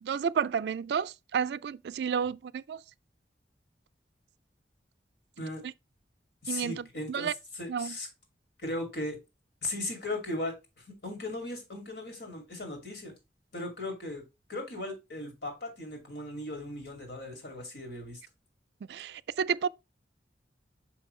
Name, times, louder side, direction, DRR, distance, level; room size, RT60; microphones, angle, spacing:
voice 1, 0.0-2.8 5.6-5.7 6.5-7.3 7.7-7.9 18.9-19.7, right 7 dB, 65° right, 0.3 m, -31 dB
voice 2, 6.4-7.3 7.6-8.1 8.6-9.2 9.6-10.5 11.0-13.1 13.5-14.2 14.5-18.2, left 1 dB, 65° left, 2.5 m, -37 dB
5.8 x 5.3 x 3.1 m
head